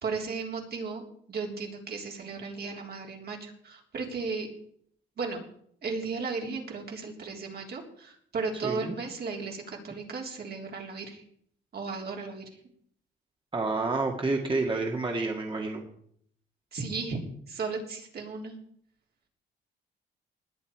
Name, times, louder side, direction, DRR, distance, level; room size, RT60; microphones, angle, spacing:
voice 1, 0.0-1.0 1.3-4.5 5.2-5.4 5.8-11.2 11.7-12.4 16.7-17.2 17.5-18.6, right 4 dB, 55° right, 1 dB, 3.6 m, -35 dB
voice 2, 8.6-8.9 13.5-15.8, right 3 dB, 25° right, 1 dB, 2.1 m, -29 dB
20.0 x 8.7 x 4.8 m, 0.64 s
cardioid pair, 90°, 20 cm